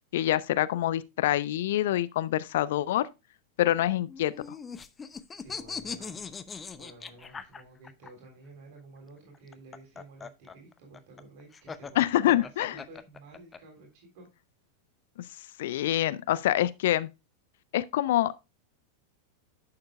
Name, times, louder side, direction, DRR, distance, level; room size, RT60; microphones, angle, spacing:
voice 1, 0.0-3.1 3.6-4.6 12.0-12.8 15.6-17.1 17.7-18.3, left 13 dB, 55° left, 0.5 m, -26 dB
sound 1, 4.1-8.1 9.3-13.6, left 5 dB, 15° left, 0.7 m, -40 dB
voice 2, 5.0-14.3, right 2 dB, 50° right, 3.4 m, -52 dB
11.0 x 6.7 x 2.3 m
figure-of-eight pair, 90°, 0 cm